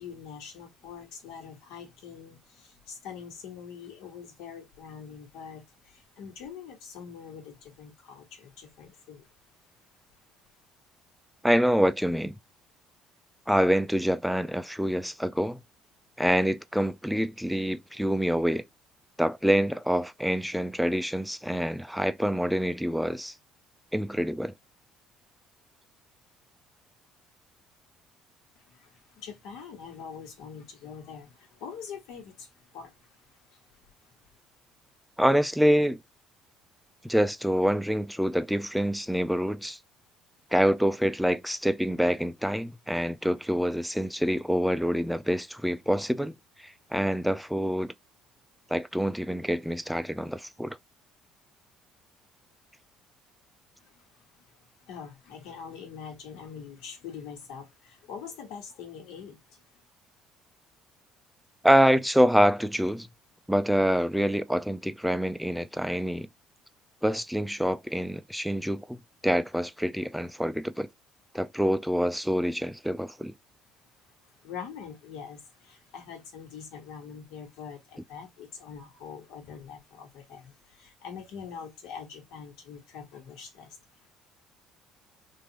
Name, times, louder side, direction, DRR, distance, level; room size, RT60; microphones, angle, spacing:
voice 1, 0.0-9.3 28.5-33.6 34.0-34.1 53.8-54.5 54.8-59.7 74.2-84.1, left 7 dB, 85° left, 1.5 m, -44 dB
voice 2, 11.4-12.3 13.5-15.6 16.2-18.7 19.2-23.3 23.9-24.5 35.2-36.0 37.0-39.8 40.5-47.9 48.7-50.8 61.6-63.1 63.5-66.3 67.0-69.0 69.2-70.9 71.3-73.3, equal, ahead, 0.3 m, -26 dB
3.7 x 2.5 x 2.9 m
cardioid pair, 125°, 0 cm